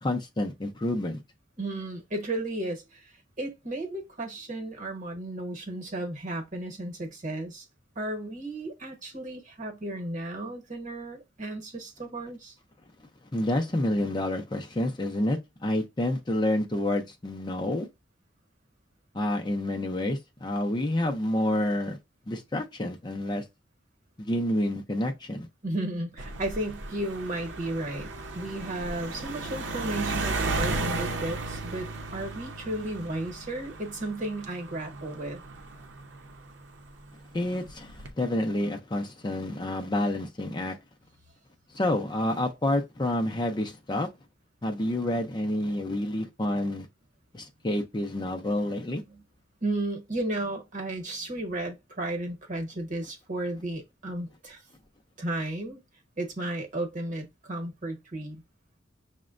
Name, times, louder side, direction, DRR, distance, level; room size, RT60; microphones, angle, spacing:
voice 1, 0.0-1.2 13.3-17.9 19.1-22.0 22.3-23.4 24.2-25.5 37.3-40.8 41.7-44.1 44.6-46.9 47.3-49.0, left 1 dB, 25° left, 0.5 m, -28 dB
voice 2, 1.6-7.7 8.0-12.5 25.6-35.4 49.1-49.2 49.6-54.6 55.2-55.8 56.2-58.4, right 1 dB, 45° right, 1.1 m, -34 dB
sound 1, 26.2-36.9 37.7-38.1, right 2 dB, 85° right, 0.7 m, -35 dB
5.9 x 2.1 x 2.4 m
head